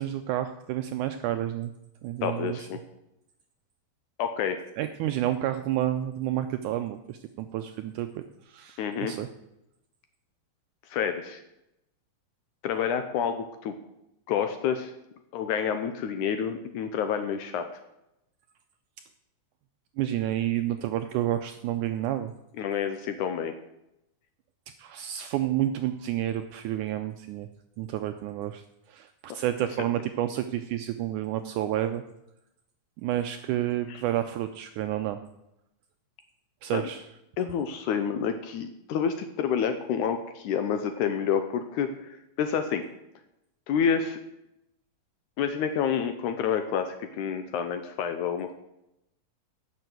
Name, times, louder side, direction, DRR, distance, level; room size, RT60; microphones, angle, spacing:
voice 1, 0.0-1.7 2.0-2.7 4.8-9.3 20.0-22.3 24.8-27.5 27.8-28.6 28.9-32.0 33.0-35.2 36.6-37.1, right 12 dB, 80° right, 8 dB, 1.8 m, -30 dB
voice 2, 2.2-2.8 4.2-4.6 8.8-9.2 10.9-11.4 12.6-13.8 14.3-14.9 15.3-17.7 22.6-23.5 33.9-34.0 36.7-36.8 37.4-42.9 43.7-44.2 45.4-48.5, left 7 dB, 75° left, 8 dB, 1.9 m, -28 dB
10.5 x 6.8 x 7.8 m, 0.86 s
omnidirectional pair, 4.1 m